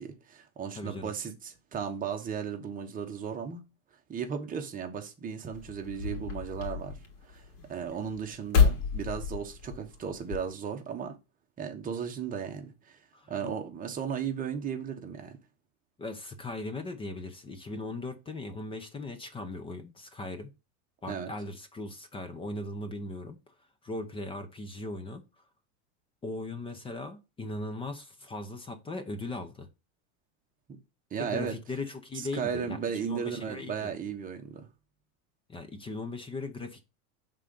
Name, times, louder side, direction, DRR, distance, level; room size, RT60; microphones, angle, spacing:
voice 1, 0.0-3.6 4.1-7.0 7.2-11.2 11.6-13.0 13.3-15.4 21.1-21.3 31.1-31.6 32.1-34.7, right 7 dB, 20° right, 1.1 m, -35 dB
voice 2, 0.8-1.1 13.1-13.5 16.0-20.5 21.0-23.5 23.8-25.2 26.2-29.7 31.2-33.9 35.5-36.8, left 2 dB, 15° left, 0.6 m, -38 dB
sound 1, 5.5-10.5, left 6 dB, 70° left, 2.3 m, -30 dB
5.6 x 3.8 x 5.2 m
supercardioid pair, 145°, 42 cm